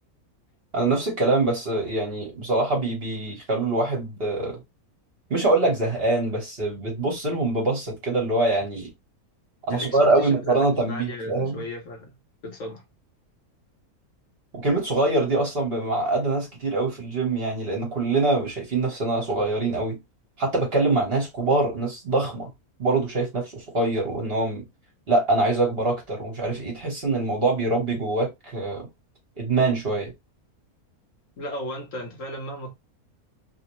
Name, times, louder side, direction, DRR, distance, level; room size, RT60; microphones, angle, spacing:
voice 1, 0.7-4.6 5.3-8.9 9.7-11.6 14.6-20.0 20.4-22.5 22.8-24.6 25.1-28.9 29.4-30.1, right 2 dB, 45° right, 1.2 m, -24 dB
voice 2, 9.7-12.1 12.4-12.8 31.4-32.7, left 1 dB, 65° left, 1.1 m, -35 dB
2.9 x 2.1 x 2.9 m
omnidirectional pair, 1.6 m